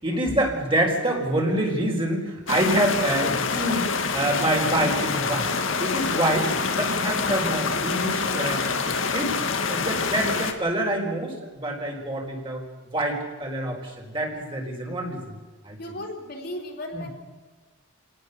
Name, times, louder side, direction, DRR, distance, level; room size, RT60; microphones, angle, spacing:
voice 1, 0.0-5.5 5.8-9.3 9.7-12.6 12.9-15.3 15.6-16.0 16.9-17.1, right 1 dB, 25° right, 0 dB, 4.7 m, -26 dB
sound 1, 2.5-10.5, left 4 dB, 65° left, 2.0 m, -26 dB
voice 2, 15.8-17.1, left 1 dB, 50° left, 0 dB, 4.0 m, -35 dB
27.0 x 18.5 x 6.9 m, 1.3 s
head